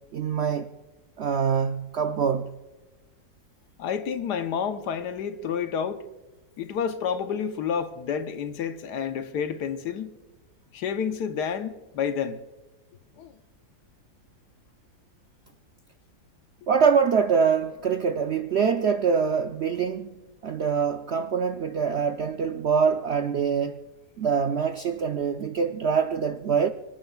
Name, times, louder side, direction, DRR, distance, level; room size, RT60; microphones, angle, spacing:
voice 1, 0.1-0.7 1.2-2.5 16.7-23.8 24.2-26.7, right 6 dB, 70° right, 0.6 m, -24 dB
voice 2, 3.8-6.1 6.6-10.2 10.7-12.4 13.2-13.4, left 7 dB, 85° left, 1.4 m, -29 dB
25.5 x 10.5 x 2.3 m
omnidirectional pair, 1.7 m